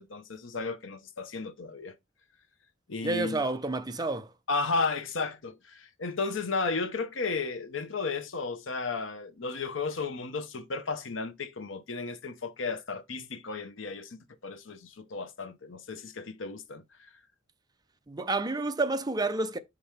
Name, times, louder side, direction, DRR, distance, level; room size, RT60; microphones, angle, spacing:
voice 1, 0.0-1.9 2.9-3.4 4.5-17.1, left 4 dB, 90° left, 0.9 m, -34 dB
voice 2, 3.0-4.3 18.1-19.6, right 2 dB, 20° right, 0.6 m, -29 dB
6.0 x 5.4 x 3.5 m
head